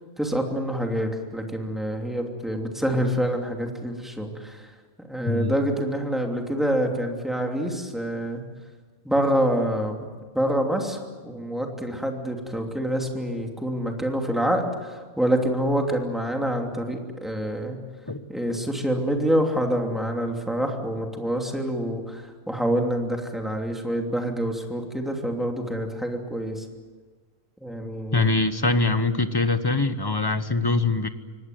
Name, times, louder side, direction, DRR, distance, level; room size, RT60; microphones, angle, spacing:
voice 1, 0.2-4.7 5.1-8.4 9.0-10.1 10.3-17.8 18.3-26.6 27.6-28.3, equal, ahead, 2 dB, 2.8 m, -26 dB
voice 2, 28.1-31.1, left 3 dB, 20° left, 11 dB, 0.9 m, -23 dB
25.0 x 18.5 x 9.4 m, 1.4 s
omnidirectional pair, 1.5 m